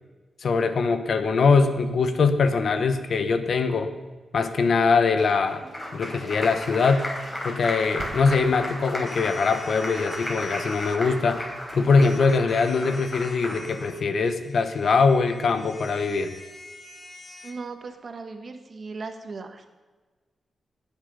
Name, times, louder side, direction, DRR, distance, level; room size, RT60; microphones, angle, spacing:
voice 1, 0.4-3.9 4.3-5.6 5.9-7.0 7.4-11.4 11.7-16.3, left 4 dB, 65° left, 9 dB, 1.1 m, -22 dB
Applause, 5.2-13.9, left 1 dB, 25° left, 4.3 m, -34 dB
sound 1, 7.5-8.6, right 3 dB, 75° right, 1.8 m, -41 dB
sound 2, 9.1-11.0 12.0-17.5, left 3 dB, 45° left, 1.5 m, -45 dB
voice 2, 17.4-19.8, right 4 dB, 50° right, 7 dB, 1.4 m, -38 dB
19.0 x 7.2 x 5.5 m, 1.3 s
cardioid pair, 95°, 0 cm